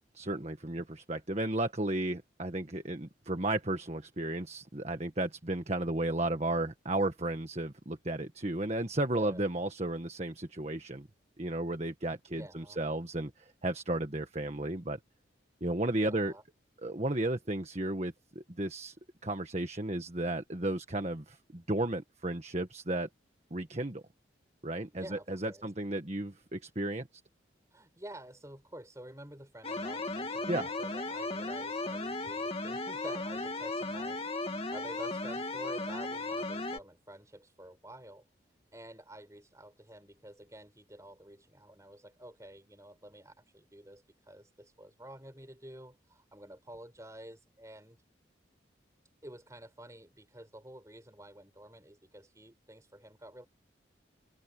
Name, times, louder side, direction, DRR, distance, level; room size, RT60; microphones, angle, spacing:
voice 1, 0.1-11.1 11.4-15.0 15.6-16.3 16.8-18.9 19.2-23.1 23.5-24.0 24.6-27.1 30.5-30.7, right 1 dB, 35° right, 1.5 m, -34 dB
voice 2, 9.2-9.6 12.3-12.8 15.9-16.4 24.9-25.7 27.7-38.3 38.7-48.0 49.2-53.5, right 1 dB, 15° right, 6.5 m, -50 dB
sound 1, 29.6-36.8, left 2 dB, 30° left, 2.3 m, -36 dB
head